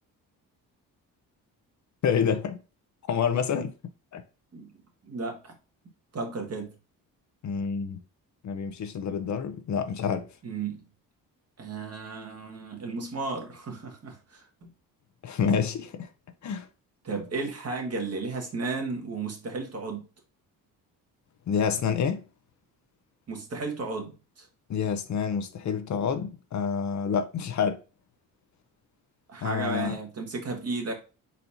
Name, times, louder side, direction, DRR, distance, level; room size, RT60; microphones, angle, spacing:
voice 1, 2.0-2.6 3.1-3.7 4.1-4.2 7.4-8.0 8.4-10.3 15.2-16.1 16.4-16.7 21.5-22.2 24.7-27.8 29.4-30.0, left 7 dB, 55° left, 0.8 m, -28 dB
voice 2, 5.1-5.5 6.1-6.7 10.4-10.8 11.6-14.7 17.0-20.1 23.3-24.5 29.3-30.9, right 3 dB, 45° right, 1.7 m, -34 dB
4.2 x 4.1 x 2.7 m
cardioid pair, 90°, 35 cm